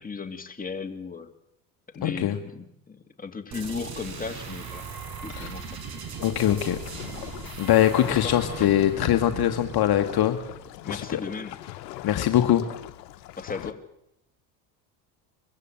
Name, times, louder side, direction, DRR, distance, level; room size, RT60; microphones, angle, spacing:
voice 1, 0.0-1.3 1.9-4.9 5.2-5.8 7.9-8.7 10.8-11.6 12.2-12.5 13.4-13.8, left 5 dB, 15° left, 5 dB, 2.5 m, -36 dB
voice 2, 2.0-2.4 5.3-5.5 6.2-6.8 7.6-10.4 10.9-11.2 12.0-12.6, left 12 dB, 50° left, 7 dB, 1.5 m, -22 dB
sound 1, 3.5-11.1, right 6 dB, 50° right, 5.0 m, -39 dB
sound 2, 6.4-13.7, left 14 dB, 85° left, 1.1 m, -41 dB
22.5 x 15.0 x 8.8 m, 0.81 s
hypercardioid pair, 75°, 49 cm